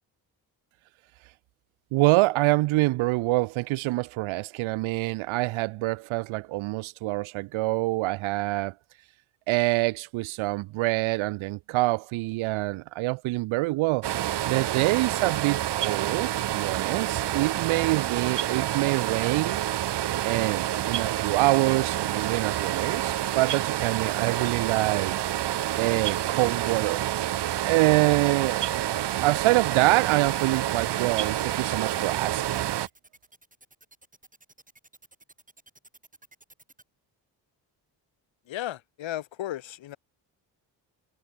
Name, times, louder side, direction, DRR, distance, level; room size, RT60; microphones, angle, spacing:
voice 1, 1.9-8.7 9.5-14.0 14.4-19.6 20.2-25.1 25.8-27.0 27.6-28.6 29.2-32.7, right 21 dB, 85° right, 1.0 m, -25 dB
sound 1, 14.0-32.9, right 12 dB, 60° right, 1.2 m, -28 dB
sound 2, 29.9-36.8, right 2 dB, 15° right, 4.4 m, -55 dB
voice 2, 38.5-40.0, left 13 dB, 75° left, 2.7 m, -34 dB
supercardioid pair, 65°, 46 cm